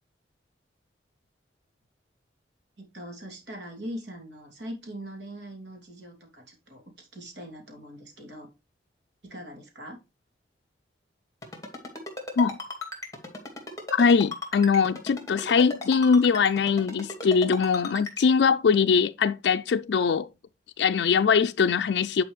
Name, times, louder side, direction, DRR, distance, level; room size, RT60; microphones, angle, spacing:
voice 1, 2.8-8.5 9.2-10.0, equal, 80° right, 2.8 m, -41 dB
Ringtone, 11.4-18.2, left 2 dB, 20° left, 2.2 m, -36 dB
voice 2, 13.9-20.3 20.8-22.2, left 5 dB, 70° left, 0.4 m, -22 dB
10.0 x 5.1 x 3.2 m
head